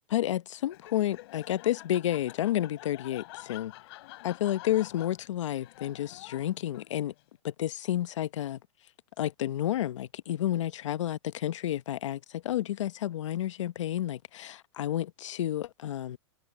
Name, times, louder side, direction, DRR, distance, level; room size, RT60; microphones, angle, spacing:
voice 1, 0.1-3.7 4.2-7.1 7.4-8.6 9.2-16.2, left 12 dB, 75° left, 0.9 m, -31 dB
Laughter, 0.6-7.2, left 19 dB, 55° left, 3.1 m, -48 dB
supercardioid pair, 150°, 16 cm